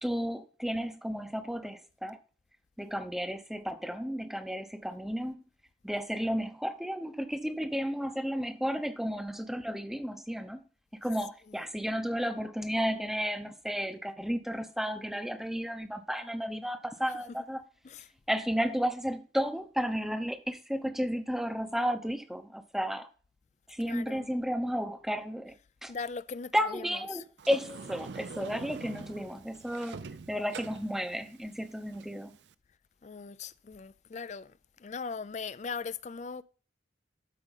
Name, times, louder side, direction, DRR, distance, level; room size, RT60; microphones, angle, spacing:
voice 1, 0.0-2.2 2.8-5.4 5.8-10.6 11.0-17.6 18.3-23.1 23.7-25.5 25.8-25.9 26.5-32.3, equal, ahead, 0.7 m, -33 dB
voice 2, 23.9-24.3 25.9-26.8 27.1-27.2 33.0-34.5 34.8-36.4, left 5 dB, 35° left, 0.4 m, -39 dB
Sliding door, 27.4-32.5, right 4 dB, 65° right, 0.5 m, -45 dB
12.5 x 5.0 x 4.0 m
head